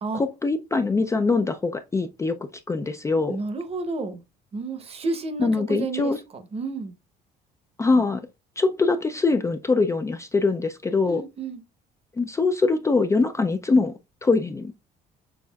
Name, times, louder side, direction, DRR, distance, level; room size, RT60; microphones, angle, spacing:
voice 1, 0.1-3.4 5.4-6.2 7.8-8.2 8.6-11.2 12.2-13.9 14.2-14.7, left 3 dB, 15° left, 0.3 m, -23 dB
voice 2, 3.3-4.2 4.5-6.9 11.0-11.6, right 3 dB, 35° right, 0.8 m, -31 dB
6.2 x 3.2 x 2.2 m
cardioid pair, 110°, 17 cm